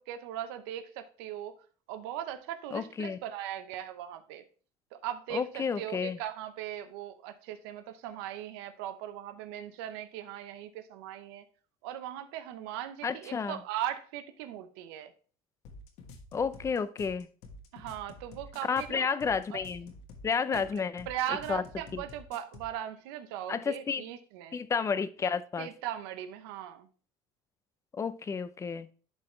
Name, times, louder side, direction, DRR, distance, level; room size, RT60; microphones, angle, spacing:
voice 1, 0.0-1.6 1.9-4.4 4.9-5.4 5.8-11.4 11.8-15.1 17.7-19.2 19.5-19.6 20.5-20.6 21.1-24.6 25.6-26.9, right 11 dB, 85° right, 0.7 m, -39 dB
voice 2, 2.7-3.2 5.3-6.2 13.0-13.6 16.3-17.3 18.7-19.9 20.2-21.6 21.9-22.0 23.5-24.0 24.5-25.7 28.0-28.9, left 6 dB, 25° left, 0.6 m, -31 dB
sound 1, 15.6-22.7, left 2 dB, 65° left, 1.5 m, -49 dB
11.5 x 4.0 x 3.2 m
supercardioid pair, 115°, 12 cm